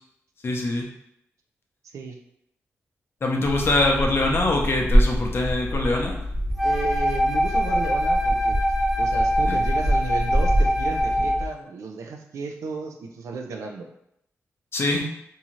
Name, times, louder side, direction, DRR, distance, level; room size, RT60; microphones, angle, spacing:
voice 1, 0.4-0.9 3.2-6.1 9.5-9.6 14.7-15.1, left 2 dB, 50° left, 0 dB, 0.6 m, -23 dB
voice 2, 1.8-2.2 6.6-8.6 9.0-13.9, right 4 dB, 80° right, 3 dB, 0.3 m, -33 dB
sound 1, 3.4-11.5, equal, 35° right, 0.9 m, -25 dB
Wind instrument woodwind instrument, 6.6-11.5, equal, ahead, 0.5 m, -24 dB
2.7 x 2.4 x 2.9 m, 0.77 s
cardioid pair, 70°, 5 cm